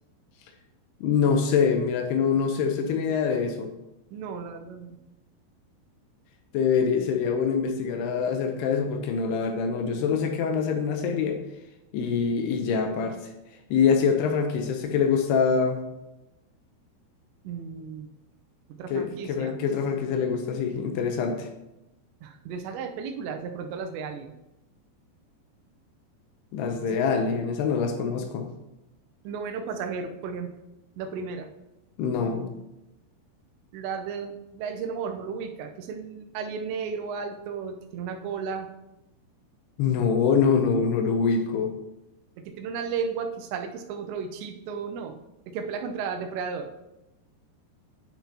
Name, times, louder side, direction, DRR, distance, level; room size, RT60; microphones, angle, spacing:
voice 1, 1.0-3.7 6.5-11.4 11.9-13.2 13.7-15.8 18.9-21.5 26.5-28.5 32.0-32.5 39.8-41.7, left 6 dB, 80° left, 5 dB, 2.6 m, -24 dB
voice 2, 4.1-5.0 17.4-18.1 18.8-19.5 22.2-24.3 26.8-27.0 29.2-30.5 31.0-31.5 33.7-38.7 42.4-45.2 45.5-46.7, right 6 dB, 85° right, 5 dB, 2.9 m, -34 dB
10.0 x 5.9 x 2.8 m, 0.92 s
omnidirectional pair, 5.0 m